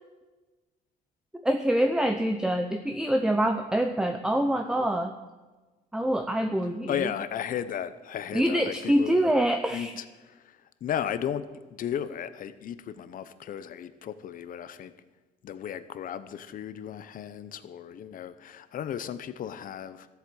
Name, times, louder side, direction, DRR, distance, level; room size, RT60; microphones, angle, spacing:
voice 1, 1.3-5.1 5.9-7.1 8.3-9.9, right 1 dB, 5° right, 6 dB, 0.8 m, -25 dB
voice 2, 6.9-9.3 9.7-14.9 15.4-20.1, left 9 dB, 55° left, 13 dB, 0.9 m, -35 dB
13.5 x 8.4 x 7.9 m, 1.2 s
cardioid pair, 110°, 17 cm